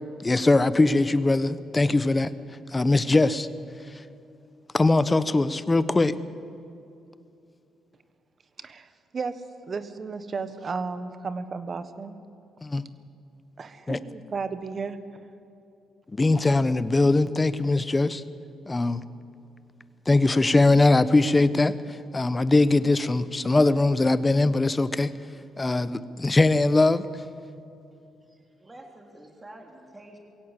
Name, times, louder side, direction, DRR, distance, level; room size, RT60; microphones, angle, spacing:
voice 1, 0.2-2.3 2.7-3.5 4.7-6.1 12.6-12.8 13.9-14.0 16.1-18.2 18.7-19.0 20.1-25.1 25.6-27.0, left 2 dB, 20° left, 14 dB, 1.0 m, -21 dB
voice 2, 8.6-9.3 9.7-12.1 13.6-15.0, right 4 dB, 40° right, 11 dB, 1.5 m, -33 dB
voice 3, 28.3-30.2, right 1 dB, 20° right, 2 dB, 3.3 m, -48 dB
22.0 x 16.5 x 8.4 m, 2.6 s
cardioid pair, 90°, 0 cm